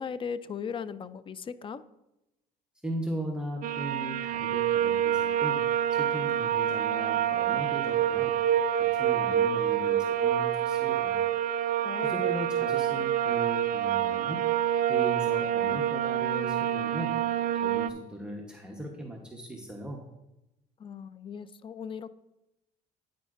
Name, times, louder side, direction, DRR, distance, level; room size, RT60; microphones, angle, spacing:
voice 1, 0.0-1.8 11.8-12.2 20.8-22.1, left 6 dB, 30° left, 15 dB, 0.4 m, -37 dB
voice 2, 2.8-5.6 5.9-8.3 8.7-11.2 12.0-14.4 14.9-17.1 17.5-20.0, right 1 dB, 5° right, -1 dB, 1.0 m, -38 dB
sound 1, 3.6-17.9, right 10 dB, 55° right, 0.4 m, -27 dB
9.3 x 9.0 x 2.5 m, 0.94 s
cardioid pair, 110°, 17 cm